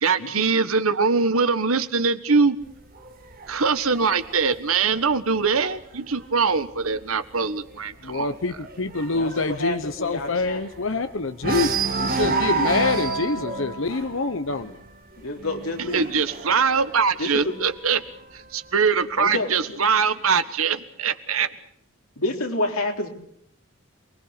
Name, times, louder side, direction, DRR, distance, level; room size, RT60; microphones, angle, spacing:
voice 1, 0.0-2.6 3.5-8.4 15.8-18.0 18.3-21.5, right 5 dB, 80° right, 11 dB, 1.5 m, -22 dB
sound 1, 2.6-6.2 6.6-7.0 7.2-7.3 7.7-11.0 11.4-17.9 18.8-19.8, right 4 dB, 45° right, 2.3 m, -30 dB
voice 2, 8.0-14.8, left 3 dB, 65° left, 10 dB, 1.0 m, -26 dB
voice 3, 9.1-10.6 15.2-16.1 17.2-17.5 19.2-19.8 22.2-23.1, left 2 dB, 85° left, 3 dB, 3.7 m, -28 dB
28.0 x 20.5 x 6.7 m, 0.67 s
head